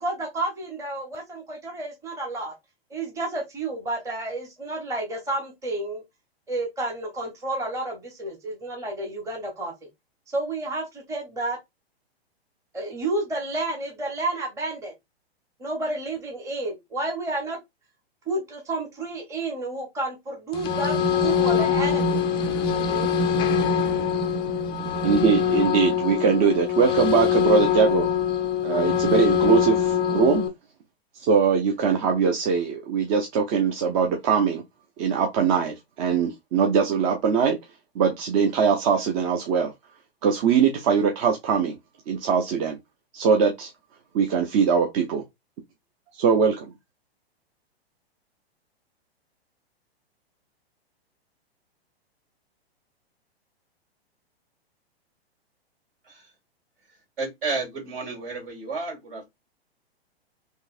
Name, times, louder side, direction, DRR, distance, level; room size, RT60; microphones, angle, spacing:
voice 1, 0.0-2.5 2.9-6.0 6.5-9.7 10.3-11.6 12.7-14.9 15.6-17.6 18.3-22.3 22.9-23.1, right 2 dB, 10° right, 0.9 m, -30 dB
sound 1, 20.5-30.5, left 7 dB, 15° left, 0.4 m, -23 dB
voice 2, 25.0-28.1 28.6-30.4 31.1-34.6 35.0-37.6 38.0-39.7 40.2-41.8 42.1-42.8 43.1-43.7 44.1-45.2 46.1-46.7, right 6 dB, 35° right, 0.6 m, -22 dB
voice 3, 57.2-59.2, right 3 dB, 60° right, 2.2 m, -31 dB
3.7 x 2.7 x 2.5 m
hypercardioid pair, 115°, 32 cm